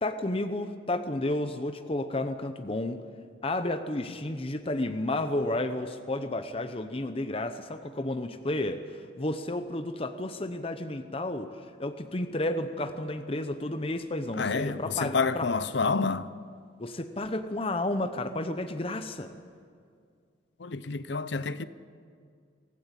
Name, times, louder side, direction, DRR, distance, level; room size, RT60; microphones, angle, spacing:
voice 1, 0.0-3.0 3.4-11.5 11.8-15.5 16.8-19.3, left 1 dB, 30° left, 0.8 m, -32 dB
voice 2, 14.3-16.3 20.6-21.7, left 4 dB, 70° left, 0.8 m, -28 dB
24.0 x 16.0 x 8.2 m
head